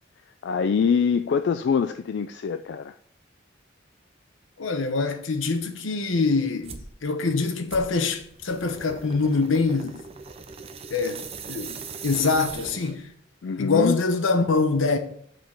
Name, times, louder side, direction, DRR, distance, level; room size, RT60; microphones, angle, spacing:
voice 1, 0.4-2.9 13.4-14.0, left 6 dB, 60° left, 0.3 m, -24 dB
voice 2, 4.6-10.0 10.9-11.2 11.5-13.1 13.6-15.0, left 4 dB, 80° left, 0.9 m, -24 dB
sound 1, 6.6-6.9 7.7-13.1, right 5 dB, 30° right, 0.6 m, -40 dB
6.0 x 5.1 x 5.8 m
head